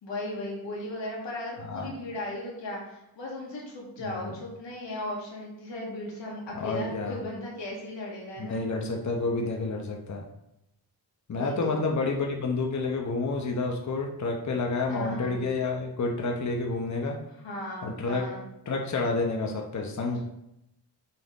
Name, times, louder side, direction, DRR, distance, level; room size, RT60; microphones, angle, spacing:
voice 1, 0.0-8.6 11.3-11.9 14.9-15.4 17.4-18.4, left 1 dB, 90° left, -3 dB, 2.1 m, -36 dB
voice 2, 6.5-7.2 8.4-10.3 11.3-17.2 17.8-18.3 18.7-20.2, left 3 dB, 40° left, 1 dB, 0.9 m, -29 dB
6.7 x 3.9 x 4.0 m, 0.83 s
cardioid pair, 95°, 43 cm